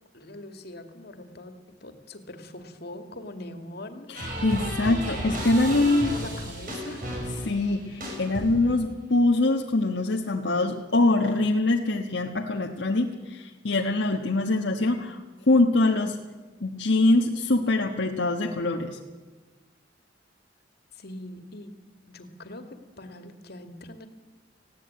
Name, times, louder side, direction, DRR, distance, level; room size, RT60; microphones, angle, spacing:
voice 1, 0.1-1.6 1.8-4.1 5.6-7.1 20.9-21.7 22.1-24.1, left 1 dB, 60° left, 7 dB, 2.3 m, -42 dB
voice 2, 4.1-6.1 7.4-15.2 15.5-16.2 16.6-19.0, left 2 dB, 75° left, 1 dB, 1.4 m, -23 dB
sound 1, 4.1-8.8, right 1 dB, 50° right, 6.9 m, -33 dB
19.5 x 16.0 x 8.8 m, 1.3 s
head